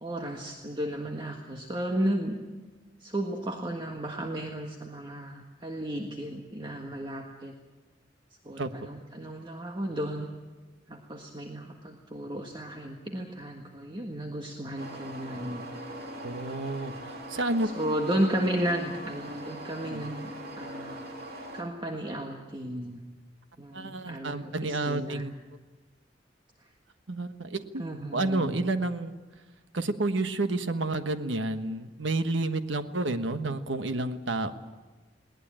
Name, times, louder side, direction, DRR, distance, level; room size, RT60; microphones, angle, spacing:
voice 1, 0.0-2.4 3.0-7.5 8.4-10.3 10.9-15.6 17.7-20.3 20.6-21.0 21.5-23.0 23.6-25.2 27.8-28.6, right 1 dB, 25° right, 2 dB, 1.7 m, -33 dB
sound 1, 14.8-21.6, right 1 dB, 55° right, 3.3 m, -41 dB
voice 2, 16.2-16.9 17.3-17.7 19.8-20.1 23.7-25.3 27.1-27.8 28.1-29.2 29.7-34.5, right 2 dB, 80° right, 9 dB, 1.4 m, -30 dB
21.0 x 18.5 x 8.9 m, 1.3 s
head